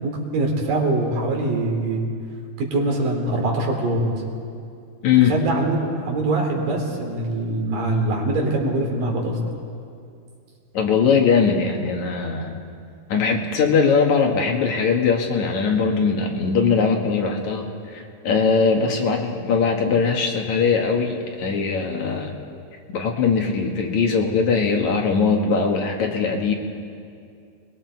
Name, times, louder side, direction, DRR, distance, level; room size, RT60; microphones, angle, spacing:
voice 1, 0.0-2.1 2.6-4.2 5.3-9.4, right 2 dB, 75° right, 0 dB, 4.7 m, -23 dB
voice 2, 5.0-5.3 10.7-12.6 13.1-22.3 22.9-26.5, left 5 dB, 60° left, 2 dB, 2.6 m, -20 dB
28.5 x 21.5 x 4.6 m, 2.4 s
omnidirectional pair, 3.9 m